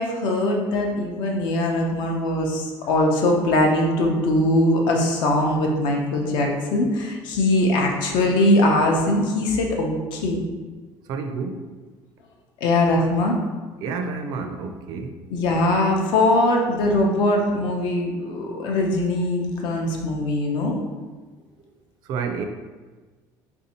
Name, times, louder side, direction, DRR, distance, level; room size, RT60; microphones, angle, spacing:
voice 1, 0.0-10.4 12.6-13.4 15.3-20.8, left 1 dB, 70° left, 1 dB, 0.7 m, -21 dB
voice 2, 11.1-11.7 13.8-15.2 22.0-22.4, right 5 dB, 55° right, 6 dB, 0.4 m, -29 dB
3.4 x 2.7 x 4.1 m, 1.4 s
cardioid pair, 170°, 8 cm